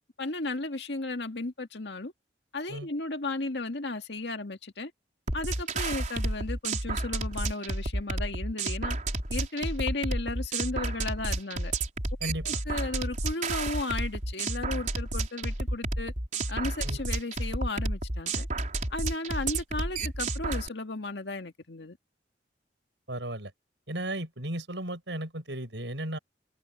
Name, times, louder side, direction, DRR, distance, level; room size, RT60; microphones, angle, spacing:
voice 1, 0.2-2.1 2.5-4.9 5.3-9.0 9.3-11.7 12.4-16.1 16.5-18.5 18.9-22.0, left 2 dB, 70° left, 2.0 m, -34 dB
sound 1, 5.3-20.7, right 2 dB, 45° right, 4.7 m, -31 dB
voice 2, 12.2-12.6 16.8-17.0 23.1-23.5 23.9-26.2, right 1 dB, 85° right, 6.6 m, -35 dB
head